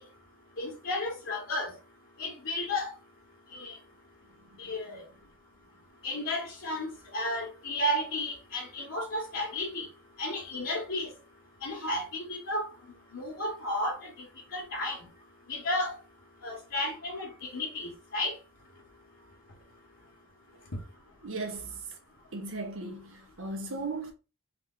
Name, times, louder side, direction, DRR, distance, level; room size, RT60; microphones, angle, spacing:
voice 1, 0.6-1.7 2.2-2.9 3.5-3.8 4.6-5.0 6.0-9.9 10.2-11.1 11.6-12.7 13.1-14.2 14.5-15.0 15.5-16.0 16.4-18.3, left 1 dB, 60° left, 1.3 m, -33 dB
voice 2, 4.3-5.0 21.2-22.0 22.3-24.1, right 3 dB, 60° right, 1.0 m, -38 dB
3.6 x 3.2 x 3.7 m
head